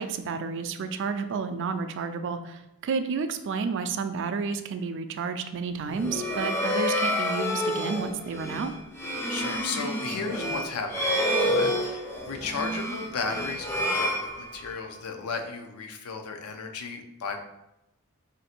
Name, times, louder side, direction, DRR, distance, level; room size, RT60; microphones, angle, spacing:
voice 1, 0.0-8.7, right 5 dB, 55° right, 9 dB, 0.3 m, -31 dB
sound 1, 5.9-14.9, left 1 dB, 10° left, 0.4 m, -29 dB
voice 2, 9.3-17.4, left 4 dB, 80° left, 5 dB, 0.5 m, -35 dB
3.2 x 2.6 x 4.2 m, 0.88 s
head